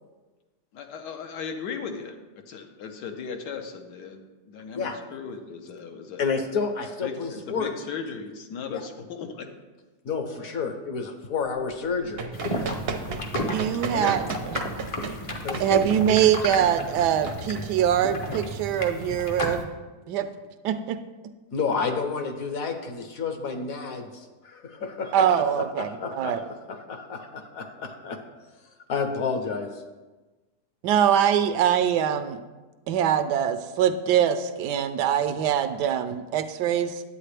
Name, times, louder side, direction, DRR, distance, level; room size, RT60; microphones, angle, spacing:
voice 1, 0.7-2.2 2.5-6.4 7.0-9.5 13.0-13.3, left 5 dB, 85° left, 5 dB, 1.4 m, -37 dB
voice 2, 6.2-7.7 8.7-8.8 10.0-12.3 13.7-14.2 15.4-16.2 21.5-25.3 25.6-26.4 26.7-28.2 28.9-29.7, left 5 dB, 60° left, 6 dB, 1.1 m, -30 dB
Run, 11.9-18.2, right 4 dB, 55° right, 0.7 m, -35 dB
sound 1, 12.3-19.6, left 1 dB, 45° left, 0.4 m, -33 dB
voice 3, 13.5-14.6 15.6-19.7 20.1-20.3 20.6-21.0 25.1-26.4 30.8-32.4 32.9-37.0, right 9 dB, 80° right, 10 dB, 1.2 m, -23 dB
9.8 x 8.2 x 3.3 m, 1.2 s
omnidirectional pair, 1.8 m